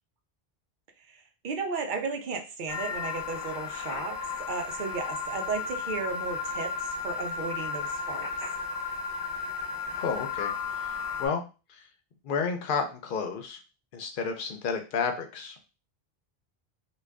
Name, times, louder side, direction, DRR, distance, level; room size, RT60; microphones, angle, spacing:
voice 1, 1.0-8.3, right 4 dB, 55° right, 5 dB, 0.7 m, -35 dB
sound 1, 2.7-11.3, left 5 dB, 30° left, 0.6 m, -34 dB
voice 2, 9.9-11.4 11.7-11.9 12.2-13.6 13.9-15.6, left 5 dB, 65° left, 6 dB, 0.7 m, -31 dB
2.5 x 2.3 x 3.3 m, 0.32 s
omnidirectional pair, 1.0 m